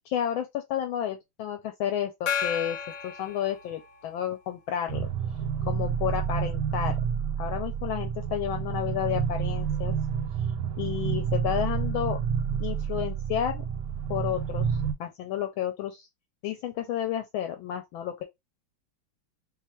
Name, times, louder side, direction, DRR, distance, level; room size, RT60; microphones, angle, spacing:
voice 1, 0.1-2.8 3.0-5.1 5.7-7.0 7.4-9.9 10.8-12.2 12.6-13.6 14.1-16.1 16.4-18.2, left 10 dB, 75° left, 1.3 m, -31 dB
Gong, 2.3-4.3, left 8 dB, 55° left, 1.0 m, -33 dB
sound 1, 4.9-14.9, right 7 dB, 70° right, 1.0 m, -29 dB
3.2 x 2.4 x 4.2 m
omnidirectional pair, 2.3 m